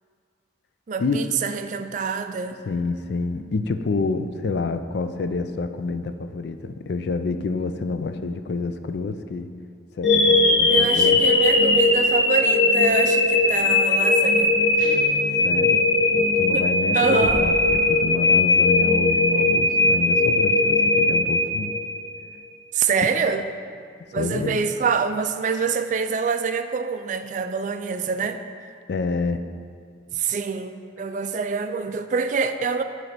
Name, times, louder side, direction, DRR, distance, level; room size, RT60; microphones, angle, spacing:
voice 1, 0.9-2.6 10.7-14.6 16.4-16.7 16.9-17.5 22.7-23.5 24.1-28.4 30.1-32.8, right 5 dB, 40° right, 8 dB, 0.3 m, -25 dB
voice 2, 2.6-9.5 10.0-11.2 15.4-15.8 16.1-21.7 24.1-24.6 28.9-29.4, left 3 dB, 60° left, 9 dB, 0.4 m, -28 dB
sound 1, 10.0-22.1, left 2 dB, 80° left, 1.1 m, -19 dB
Guitar, 14.8-15.6, right 1 dB, 45° left, 0.7 m, -37 dB
sound 2, 17.2-18.8, equal, 25° left, 1.4 m, -37 dB
9.3 x 3.2 x 5.9 m, 2.2 s
head